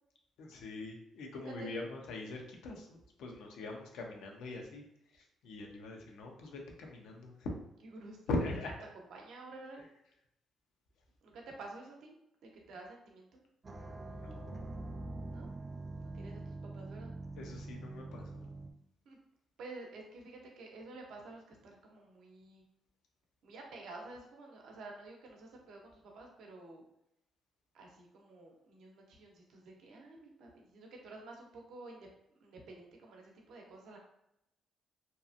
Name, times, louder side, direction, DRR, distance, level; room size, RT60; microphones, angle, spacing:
voice 1, 0.4-4.8 5.1-7.5 8.3-8.7 14.1-14.6 17.4-18.5, left 2 dB, 85° left, 1 dB, 0.5 m, -42 dB
voice 2, 1.3-1.8 3.3-3.5 7.9-8.4 9.1-9.8 11.2-12.1 12.4-13.4 15.2-17.1 19.1-19.2 19.6-22.6 23.4-26.8 27.7-34.0, right 2 dB, 75° right, 0 dB, 0.7 m, -51 dB
sound 1, 13.6-18.7, right 2 dB, 35° right, 0.4 m, -44 dB
2.8 x 2.4 x 2.5 m, 0.81 s
cardioid pair, 90°, 0 cm